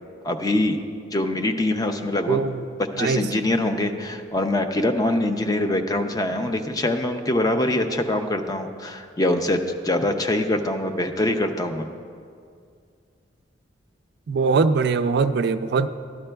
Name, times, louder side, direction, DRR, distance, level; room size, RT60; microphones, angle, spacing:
voice 1, 0.2-0.8 1.1-2.4 2.8-11.9, left 1 dB, 20° left, 6 dB, 0.5 m, -24 dB
voice 2, 2.3-2.6 3.0-3.2 14.3-15.9, right 4 dB, 60° right, 11 dB, 0.3 m, -21 dB
13.0 x 11.5 x 2.3 m, 2.2 s
head